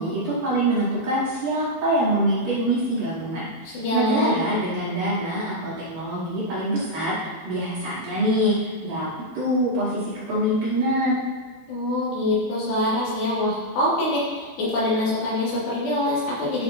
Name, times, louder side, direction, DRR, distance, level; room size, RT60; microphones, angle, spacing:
voice 1, 0.0-9.1 9.3-11.2, right 1 dB, 55° right, -11 dB, 4.0 m, -24 dB
voice 2, 3.7-4.4 11.7-16.6, left 1 dB, 65° left, -8 dB, 4.7 m, -24 dB
11.0 x 7.3 x 2.9 m, 1.5 s
omnidirectional pair, 5.4 m